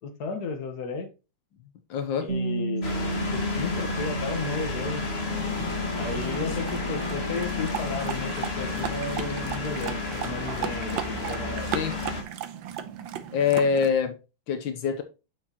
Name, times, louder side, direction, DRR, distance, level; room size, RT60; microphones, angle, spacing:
voice 1, 0.0-1.1 2.2-3.0 3.3-5.0 6.0-11.7, left 4 dB, 55° left, 1.8 m, -34 dB
voice 2, 1.9-2.3 11.7-11.9 13.3-14.2 14.5-15.0, left 6 dB, 80° left, 1.6 m, -24 dB
Bass guitar, 2.3-8.5, right 3 dB, 40° right, 1.7 m, -34 dB
sound 1, 2.8-12.2, left 4 dB, 35° left, 2.1 m, -31 dB
sound 2, 5.3-13.9, right 9 dB, 80° right, 1.6 m, -36 dB
8.6 x 6.4 x 2.9 m
omnidirectional pair, 2.1 m